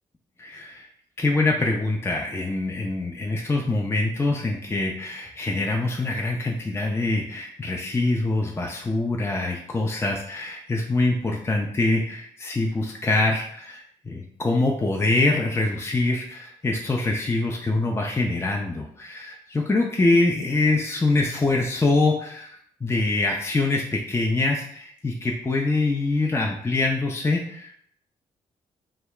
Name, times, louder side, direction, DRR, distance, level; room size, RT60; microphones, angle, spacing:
voice 1, 0.4-0.9 1.2-27.8, left 2 dB, 15° left, 0 dB, 0.4 m, -24 dB
2.2 x 2.1 x 3.7 m, 0.66 s
hypercardioid pair, 40°, 17 cm